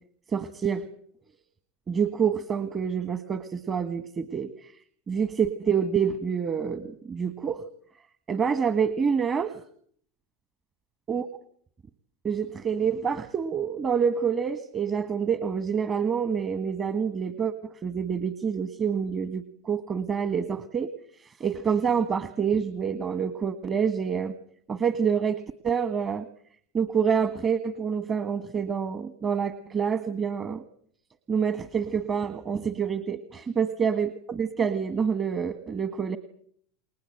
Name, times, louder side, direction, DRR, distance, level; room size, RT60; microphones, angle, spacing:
voice 1, 0.3-0.8 1.9-4.5 5.1-7.6 8.3-9.5 11.1-11.2 12.2-17.5 17.8-20.9 21.4-24.3 24.7-26.3 26.7-30.6 31.3-36.2, right 6 dB, 30° right, 12 dB, 1.6 m, -27 dB
29.5 x 20.5 x 7.9 m, 0.63 s
hypercardioid pair, 85°, 0 cm